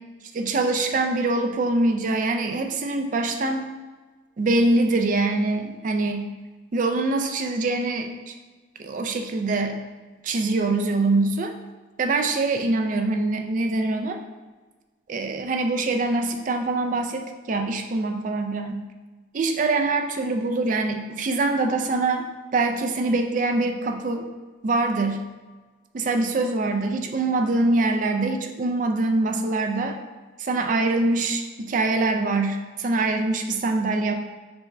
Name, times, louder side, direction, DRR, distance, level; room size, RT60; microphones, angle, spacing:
voice 1, 0.3-3.7 4.4-6.3 6.7-8.3 8.8-9.8 10.2-11.5 12.0-14.2 15.1-18.8 19.3-22.2 22.5-24.3 24.6-25.2 25.9-30.0 30.4-34.1, right 2 dB, 40° right, 5 dB, 0.3 m, -24 dB
3.5 x 3.2 x 4.1 m, 1.3 s
head